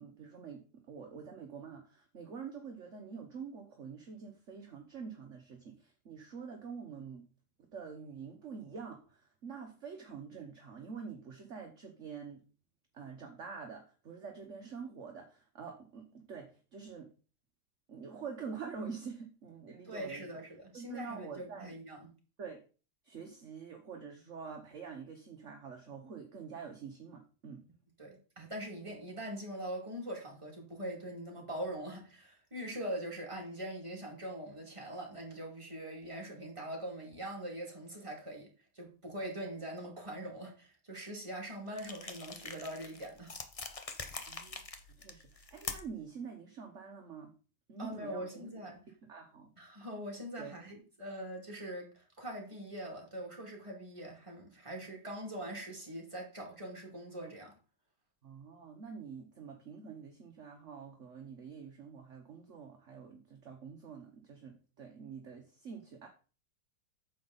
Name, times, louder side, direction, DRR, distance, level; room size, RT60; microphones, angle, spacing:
voice 1, 0.0-7.2 7.7-12.4 12.9-17.1 17.9-20.3 20.7-21.7 22.4-22.6 23.0-27.6 44.3-44.6 45.0-47.3 47.7-48.5 49.1-49.5 50.4-50.5 58.2-66.1, right 6 dB, 50° right, 1.4 m, -46 dB
voice 2, 19.8-22.1 28.0-38.5 38.7-43.3 47.8-48.8 49.6-57.5, right 1 dB, 20° right, 2.7 m, -42 dB
sound 1, 41.7-46.0, left 4 dB, 30° left, 0.7 m, -44 dB
9.2 x 6.9 x 4.1 m
omnidirectional pair, 1.7 m